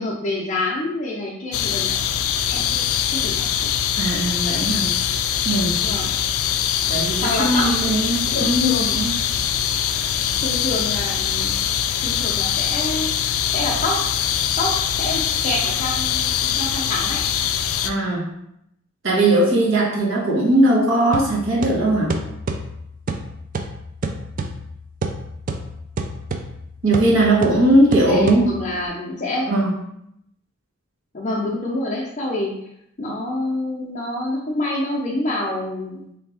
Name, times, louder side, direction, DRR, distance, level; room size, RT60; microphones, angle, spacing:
voice 1, 0.0-1.9 2.5-2.8 3.2-3.7 5.8-6.1 7.2-7.7 8.3-9.0 10.4-11.5 12.0-13.9 14.6-17.2 28.0-29.5 31.1-32.5 33.0-36.0, left 2 dB, 35° left, -6 dB, 0.6 m, -27 dB
sound 1, 1.5-17.9, left 9 dB, 80° left, 0.3 m, -23 dB
voice 2, 4.0-4.9 5.4-5.9 6.9-9.1 17.8-18.3 19.0-22.2 26.8-28.5 29.5-29.7, right 1 dB, 60° right, -4 dB, 1.3 m, -19 dB
sound 2, 21.1-28.9, right 2 dB, 40° right, 0.3 m, -30 dB
3.5 x 3.3 x 3.4 m, 0.77 s
head